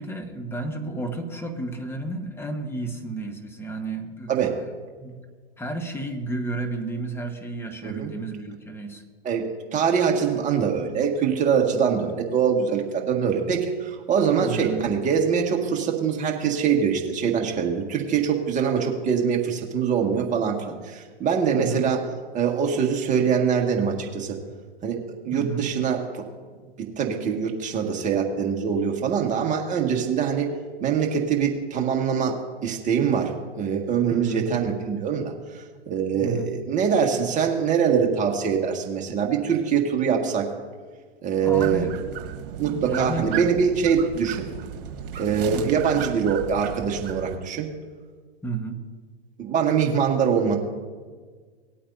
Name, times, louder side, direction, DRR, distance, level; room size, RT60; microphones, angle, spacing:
voice 1, 0.0-4.7 5.0-5.1 5.6-9.0 14.4-14.9 21.5-21.8 25.3-25.6 34.1-34.5 36.1-36.5 41.4-42.0 42.6-43.4 45.5-45.7 48.4-48.8, right 3 dB, 10° left, 5 dB, 1.3 m, -32 dB
voice 2, 9.2-22.0 22.3-24.4 24.8-25.0 25.3-26.2 27.0-30.5 30.8-40.5 41.2-41.9 42.6-44.5 45.2-47.7 49.4-50.6, right 7 dB, 25° right, 1 dB, 1.8 m, -23 dB
sound 1, 41.5-47.4, right 9 dB, 60° right, 1.6 m, -35 dB
19.5 x 8.5 x 2.7 m, 1.5 s
hypercardioid pair, 105°, 31 cm